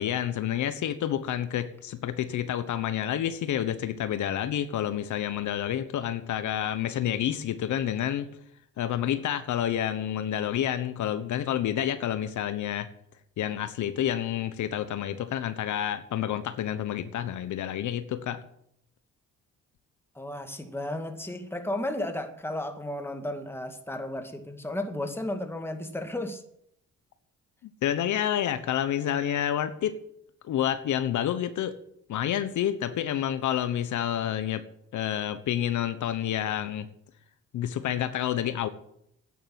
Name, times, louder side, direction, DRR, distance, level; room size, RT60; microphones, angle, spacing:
voice 1, 0.0-8.3 8.8-12.9 13.4-18.4 27.6-30.0 30.4-31.8 32.1-34.6 34.9-36.9 37.5-38.7, left 10 dB, 75° left, 11 dB, 1.1 m, -29 dB
voice 2, 20.2-26.4, left 1 dB, 10° left, 6 dB, 2.0 m, -33 dB
10.5 x 9.6 x 9.5 m, 0.74 s
cardioid pair, 90°, 30 cm